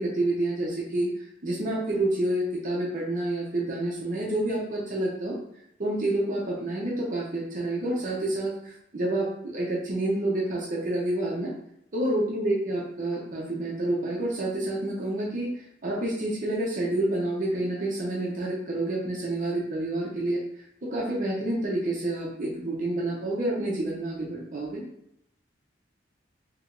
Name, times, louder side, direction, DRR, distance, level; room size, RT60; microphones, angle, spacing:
voice 1, 0.0-5.4 5.8-11.5 11.9-24.8, right 1 dB, 45° right, -3 dB, 0.6 m, -28 dB
3.2 x 2.9 x 2.5 m, 0.77 s
head